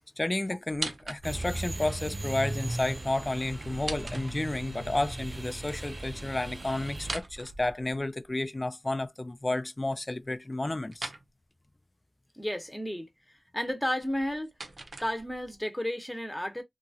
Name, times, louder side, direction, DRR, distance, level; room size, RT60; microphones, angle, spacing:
voice 1, 0.2-11.1, left 2 dB, 30° left, 0.4 m, -31 dB
sound 1, 0.7-1.6 3.6-4.8 7.0-8.3 10.9-11.3 14.0-15.6, right 2 dB, 65° right, 0.7 m, -40 dB
sound 2, 1.2-7.2, right 2 dB, 40° right, 0.3 m, -37 dB
voice 2, 12.3-13.1 13.5-14.5 15.0-16.6, left 1 dB, 10° left, 0.9 m, -32 dB
2.9 x 2.4 x 2.7 m
wide cardioid pair, 65°, 0 cm